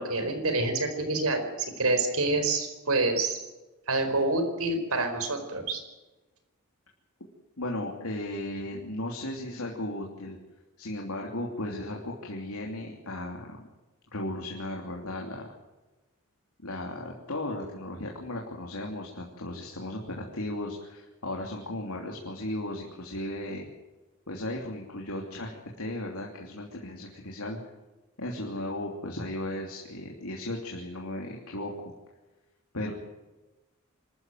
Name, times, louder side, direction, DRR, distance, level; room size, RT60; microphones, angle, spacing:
voice 1, 0.0-3.4 3.9-5.8, right 2 dB, 75° right, 7 dB, 4.5 m, -27 dB
voice 2, 7.6-10.4 10.8-13.7 14.1-15.5 16.6-23.7 24.3-27.6 28.2-31.9 32.7-32.9, left 1 dB, 75° left, 0 dB, 3.0 m, -36 dB
25.5 x 13.5 x 9.3 m, 1.1 s
head